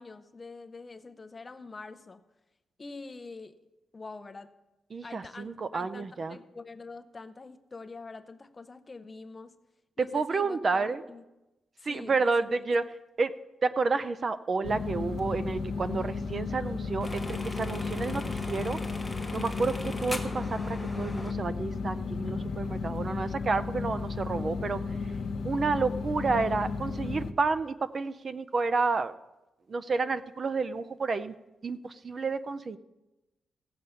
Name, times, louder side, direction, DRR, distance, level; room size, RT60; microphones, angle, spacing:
voice 1, 0.0-2.2 2.8-3.5 3.9-4.5 5.0-9.5 10.0-11.2 11.8-12.6, left 3 dB, 25° left, 9 dB, 0.6 m, -45 dB
voice 2, 4.9-6.4 10.0-11.0 11.8-12.8 13.2-13.3 13.6-18.8 19.3-24.8 25.4-29.1 29.7-31.3 31.6-32.8, right 4 dB, 35° right, 12 dB, 0.4 m, -30 dB
sound 1, 14.6-27.3, left 4 dB, 75° left, 0.7 m, -34 dB
sound 2, 17.0-21.3, left 2 dB, 5° left, 1.2 m, -40 dB
16.0 x 7.8 x 5.5 m, 1.0 s
wide cardioid pair, 160°, 0 cm